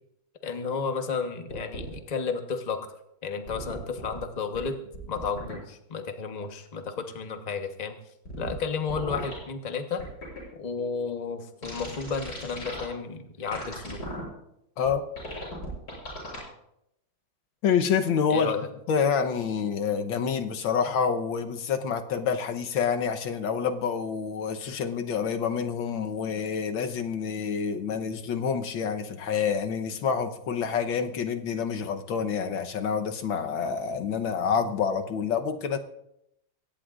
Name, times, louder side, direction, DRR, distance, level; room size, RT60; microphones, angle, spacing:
voice 1, 0.4-2.9 3.2-4.8 5.1-7.9 8.4-10.0 10.6-14.0 18.3-18.7, left 5 dB, 25° left, 5 dB, 1.0 m, -32 dB
sound 1, 1.5-1.9 3.5-4.1 4.5-4.6 4.9-5.5 8.3-8.5 8.9-9.4 10.0-10.4 11.6-12.8 13.5-14.2 14.9-15.0 15.2-16.4, equal, 55° left, 7.7 m, -37 dB
voice 2, 17.6-18.5 18.9-35.8, left 6 dB, 85° left, 6 dB, 1.8 m, -27 dB
23.0 x 17.5 x 2.5 m, 0.80 s
omnidirectional pair, 2.1 m